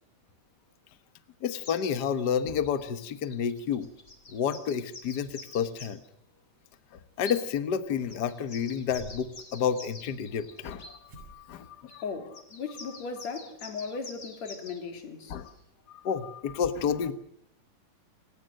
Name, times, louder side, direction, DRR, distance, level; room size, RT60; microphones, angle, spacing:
voice 1, 1.4-3.9 4.3-6.0 7.2-12.0 15.3-15.5 15.9-17.1, left 7 dB, 75° left, 0.9 m, -30 dB
sound 1, 1.5-6.1 7.2-7.4 8.1-10.9 11.9-12.0 12.3-14.8 15.5-15.6, left 3 dB, 30° left, 3.4 m, -47 dB
sound 2, 7.1-7.2 7.5-8.3 8.6-9.4 9.9-10.8 11.1-11.3 11.6-11.7 12.3-12.4, right 2 dB, 45° right, 9.0 m, -51 dB
voice 2, 12.0-15.4, left 5 dB, 55° left, 3.4 m, -37 dB
29.0 x 17.5 x 6.6 m
omnidirectional pair, 3.8 m